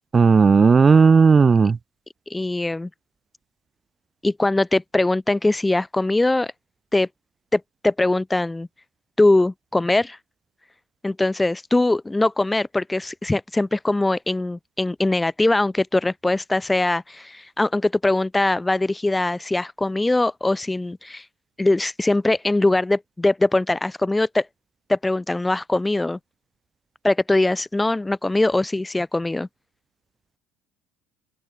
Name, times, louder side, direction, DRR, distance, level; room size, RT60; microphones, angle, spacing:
voice 1, 0.1-1.8, right 5 dB, 25° right, 0.9 m, -14 dB
voice 2, 2.3-2.9 4.2-6.5 6.9-7.1 7.5-8.7 9.2-10.2 11.0-21.2 21.6-24.5 24.9-26.2 27.0-29.5, left 2 dB, 10° left, 0.7 m, -21 dB
open air
supercardioid pair, 100°, 0 cm